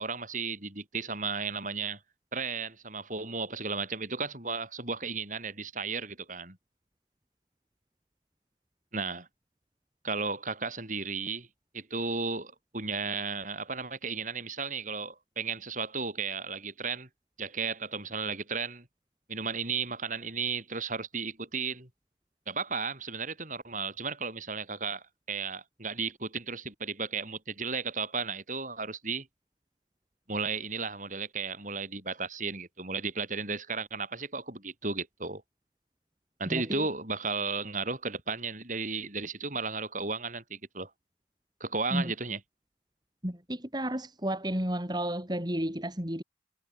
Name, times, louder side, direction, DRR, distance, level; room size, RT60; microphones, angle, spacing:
voice 1, 0.0-2.0 2.3-6.6 8.9-9.3 10.0-11.5 11.7-17.1 17.4-18.9 19.3-21.9 22.5-29.3 30.3-35.4 36.4-40.9 41.6-42.4, right 4 dB, 45° right, 7.9 m, -34 dB
voice 2, 36.5-36.9 41.9-42.1 43.2-46.2, right 1 dB, 25° right, 4.7 m, -32 dB
head